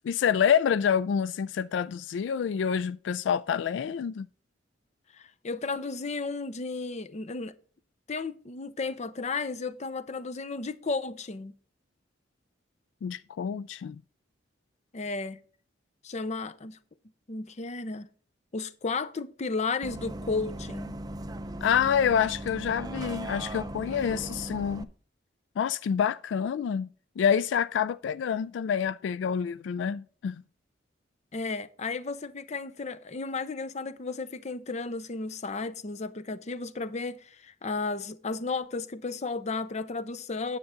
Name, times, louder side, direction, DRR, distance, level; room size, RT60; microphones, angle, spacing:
voice 1, 0.0-4.3 13.0-14.0 21.6-24.9 25.6-26.9 27.2-30.4, left 7 dB, 80° left, 0.3 m, -27 dB
voice 2, 5.1-7.5 8.1-11.5 14.9-15.4 16.0-16.8 17.3-18.1 18.5-20.9 31.3-40.6, left 3 dB, 40° left, 0.6 m, -33 dB
Bus, 19.8-24.8, right 1 dB, 20° right, 0.5 m, -38 dB
9.5 x 8.2 x 3.7 m
head